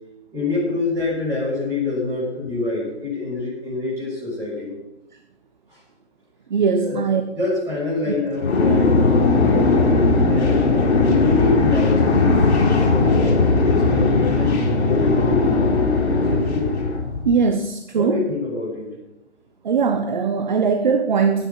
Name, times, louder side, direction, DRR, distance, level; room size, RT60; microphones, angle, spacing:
voice 1, 0.3-4.8 5.7-5.8 6.8-7.0 7.4-10.6 10.9-15.6 16.1-16.7 17.9-18.9, left 3 dB, 10° right, -8 dB, 6.8 m, -26 dB
voice 2, 6.5-7.2 8.1-8.2 17.2-18.2 19.6-21.5, right 5 dB, 40° right, 7 dB, 1.0 m, -20 dB
sound 1, 8.4-17.3, left 3 dB, 60° left, 4.0 m, -18 dB
10.0 x 9.6 x 8.9 m, 0.95 s
figure-of-eight pair, 150°, 35 cm